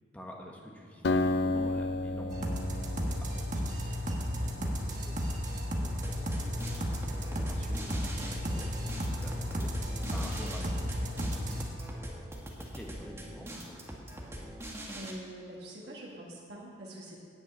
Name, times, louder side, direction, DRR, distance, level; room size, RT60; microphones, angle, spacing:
voice 1, 0.1-6.6 7.0-11.7 12.6-14.0, equal, 5° left, -1 dB, 1.5 m, -48 dB
Acoustic guitar, 1.0-4.6, left 2 dB, 60° left, 0.6 m, -32 dB
sound 1, 2.3-11.6, equal, 40° right, 1.7 m, -33 dB
sound 2, 6.0-15.1, right 1 dB, 15° right, 1.5 m, -43 dB
voice 2, 14.9-17.2, right 1 dB, 55° right, -5 dB, 2.0 m, -45 dB
10.5 x 8.6 x 8.5 m, 2.6 s
head